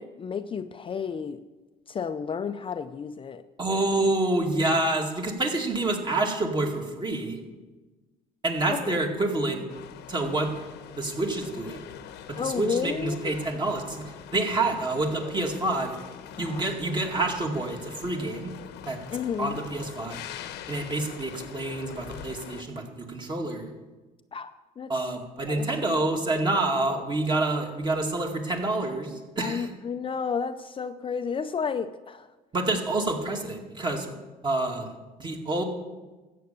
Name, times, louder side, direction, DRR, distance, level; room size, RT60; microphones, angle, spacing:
voice 1, 0.0-1.4 1.9-3.4 8.7-8.9 12.4-13.3 16.4-16.7 19.1-19.6 24.3-24.9 25.5-25.7 29.4-32.3, left 6 dB, 30° left, 9 dB, 0.5 m, -32 dB
voice 2, 3.6-7.4 8.4-9.7 10.1-10.5 11.0-11.8 12.3-15.9 16.4-18.5 18.9-19.0 19.4-20.2 20.7-23.7 24.9-29.7 32.5-34.1 34.4-34.9 35.2-35.6, right 2 dB, 25° right, 2 dB, 2.2 m, -28 dB
sound 1, 9.7-22.6, left 9 dB, 85° left, 1.0 m, -43 dB
13.5 x 8.6 x 6.8 m, 1.2 s
cardioid pair, 110°, 17 cm